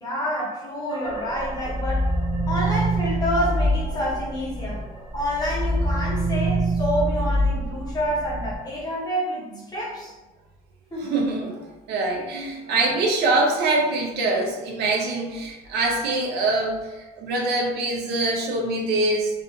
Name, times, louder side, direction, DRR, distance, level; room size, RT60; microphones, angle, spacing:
voice 1, 0.0-2.1 2.4-4.8 5.1-10.1 10.9-11.2, equal, 25° left, -5 dB, 1.0 m, -28 dB
sound 1, 0.9-4.8 5.2-8.5, right 1 dB, 10° right, 1.2 m, -25 dB
voice 2, 11.0-19.3, right 2 dB, 80° right, 0 dB, 0.6 m, -24 dB
2.5 x 2.4 x 2.7 m, 1.1 s
cardioid pair, 110°, 17 cm